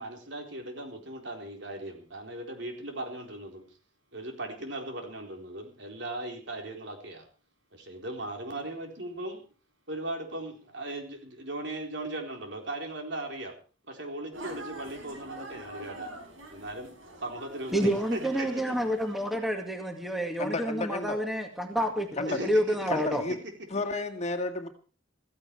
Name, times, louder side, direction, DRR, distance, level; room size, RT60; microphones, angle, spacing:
voice 1, 0.0-3.6 4.1-7.3 7.7-9.4 9.9-13.6 13.9-16.1 16.5-16.9 17.2-18.8 22.3-23.0, right 1 dB, 60° right, 3 dB, 4.2 m, -38 dB
sound 1, 14.3-19.9, right 2 dB, 85° right, 5.4 m, -45 dB
voice 2, 17.7-23.2, equal, ahead, 4 dB, 2.1 m, -29 dB
voice 3, 20.4-21.2 22.2-22.4 22.9-23.4 23.7-24.7, left 2 dB, 35° left, 5 dB, 2.0 m, -32 dB
15.5 x 15.5 x 4.7 m, 0.38 s
head